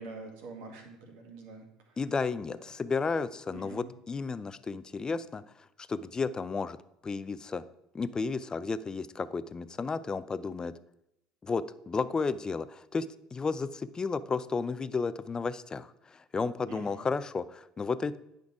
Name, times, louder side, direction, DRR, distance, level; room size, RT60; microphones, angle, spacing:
voice 1, 0.0-2.0 2.6-2.7 3.5-3.9 16.7-17.0, right 3 dB, 70° right, 2 dB, 2.0 m, -46 dB
voice 2, 2.0-6.8 7.0-7.6 7.9-10.7 11.4-18.2, left 4 dB, 25° left, 15 dB, 0.5 m, -33 dB
9.4 x 5.2 x 4.7 m, 0.82 s
hypercardioid pair, 70°, 3 cm